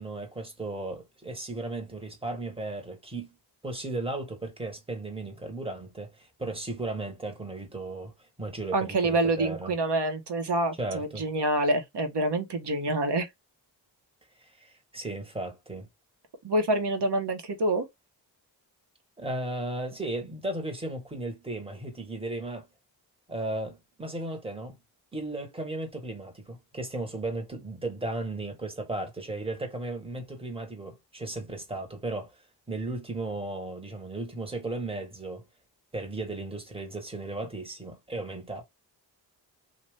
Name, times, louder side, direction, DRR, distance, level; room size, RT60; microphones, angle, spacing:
voice 1, 0.0-3.4 3.6-9.8 10.8-11.2 14.4-15.9 19.2-22.7 23.3-24.8 25.1-32.4 32.7-35.4 35.9-38.6, right 2 dB, 10° right, 1.4 m, -35 dB
voice 2, 8.7-13.3 16.4-17.8, right 2 dB, 60° right, 1.3 m, -27 dB
2.7 x 2.6 x 3.3 m
cardioid pair, 50°, 45 cm